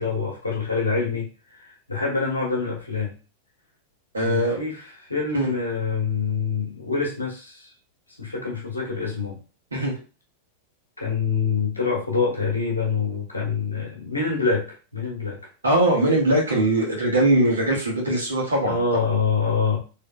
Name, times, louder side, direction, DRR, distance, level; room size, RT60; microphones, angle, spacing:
voice 1, 0.0-3.1 4.2-4.8 5.1-7.7 8.2-9.4 11.0-14.7 14.9-15.4 18.6-19.8, left 5 dB, 80° left, -3 dB, 1.3 m, -25 dB
voice 2, 4.1-4.6 5.3-5.5 9.7-9.9 15.6-18.8, right 1 dB, 75° right, -1 dB, 1.3 m, -21 dB
3.6 x 3.3 x 2.3 m, 0.34 s
figure-of-eight pair, 90°, 0 cm